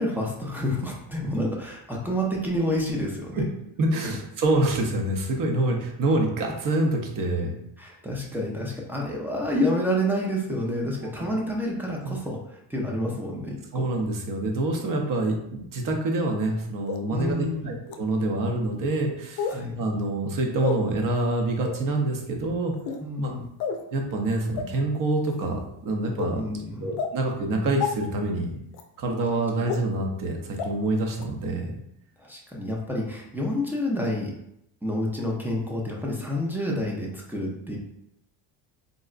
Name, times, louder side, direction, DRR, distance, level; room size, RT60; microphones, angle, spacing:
voice 1, 0.0-3.4 4.0-4.1 7.8-13.8 17.1-17.8 19.5-19.7 23.0-23.4 26.3-27.0 32.2-34.3 34.8-37.8, equal, 5° right, -3 dB, 0.3 m, -29 dB
voice 2, 3.8-7.5 12.0-12.2 13.7-22.7 23.2-23.3 23.9-26.4 26.8-28.5 29.0-31.7, right 2 dB, 45° right, 2 dB, 0.6 m, -26 dB
sound 1, 16.9-17.0 17.9-18.0 19.4-19.6 20.6-20.8 21.6-21.8 22.7-23.0 23.6-23.8 24.6-24.7 25.3-25.5 26.2-26.3 27.0-27.1 27.8-27.9 28.7-28.8 29.7-29.8 30.6-30.7 31.2-31.3, left 6 dB, 60° left, 0.5 m, -29 dB
3.7 x 2.0 x 2.4 m, 0.78 s
cardioid pair, 115°, 47 cm